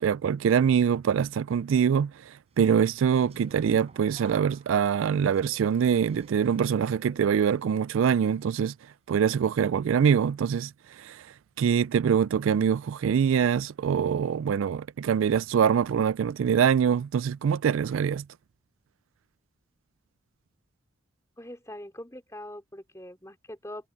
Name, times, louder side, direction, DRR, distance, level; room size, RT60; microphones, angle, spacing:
voice 1, 0.0-8.7 9.1-10.7 11.0-11.3 11.6-18.2, right 7 dB, 80° right, 0.3 m, -24 dB
sound 1, 2.9-7.9 8.3-8.7, right 2 dB, 30° right, 4.7 m, -54 dB
voice 2, 21.4-23.9, left 1 dB, 15° left, 4.1 m, -42 dB
head